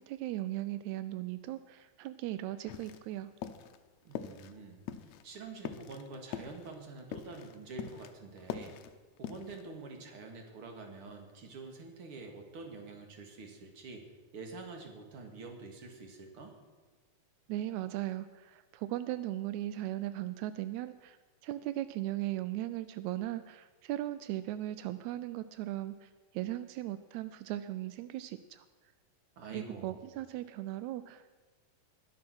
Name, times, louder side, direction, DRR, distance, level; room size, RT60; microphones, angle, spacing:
voice 1, 0.0-3.3 17.5-21.2 21.4-28.6 29.5-31.3, right 14 dB, 85° right, 13 dB, 1.6 m, -38 dB
sound 1, 2.7-3.1 3.4-3.8 4.1-4.6 4.9-8.1 8.4-9.7, left 9 dB, 75° left, 1.7 m, -43 dB
voice 2, 4.0-8.8 9.2-14.1 14.3-16.6 29.4-30.0, right 3 dB, 45° right, 3 dB, 2.5 m, -47 dB
21.0 x 7.2 x 6.1 m, 1.4 s
omnidirectional pair, 3.8 m